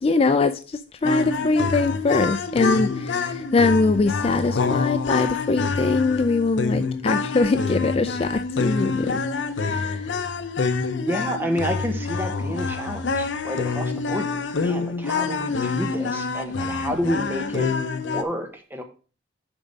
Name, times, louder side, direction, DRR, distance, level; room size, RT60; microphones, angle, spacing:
voice 1, 0.0-9.2 9.6-10.1, left 3 dB, 30° left, 0.3 m, -22 dB
sound 1, 1.0-18.2, left 4 dB, 80° left, 0.6 m, -26 dB
voice 2, 11.0-17.7 18.1-18.8, equal, 10° right, 1.0 m, -29 dB
7.0 x 5.1 x 4.0 m
head